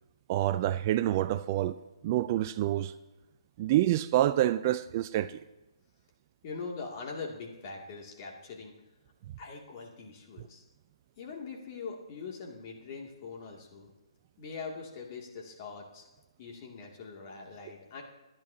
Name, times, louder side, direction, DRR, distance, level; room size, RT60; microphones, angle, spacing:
voice 1, 0.3-1.7 2.0-2.9 3.6-5.4, right 13 dB, 30° right, 0.4 m, -27 dB
voice 2, 6.4-8.7 9.4-10.6 11.2-13.9 14.4-16.0 16.4-18.0, left 4 dB, 35° left, 2.5 m, -42 dB
22.5 x 10.5 x 2.8 m
hypercardioid pair, 150°, 3 cm